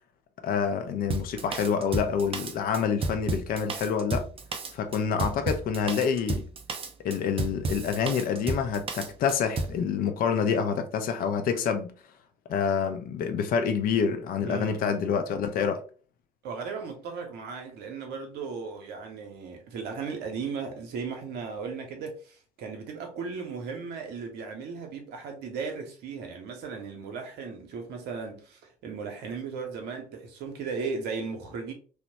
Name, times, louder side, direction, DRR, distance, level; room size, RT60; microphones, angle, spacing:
voice 1, 0.4-4.3 4.7-6.5 7.0-11.9 12.5-15.8, left 6 dB, 45° left, 0.4 m, -27 dB
Drum kit, 1.1-9.8, right 3 dB, 30° right, 0.4 m, -32 dB
voice 2, 14.4-15.0 16.4-31.7, right 5 dB, 55° right, 0.7 m, -36 dB
2.9 x 2.1 x 2.8 m
figure-of-eight pair, 45°, 20 cm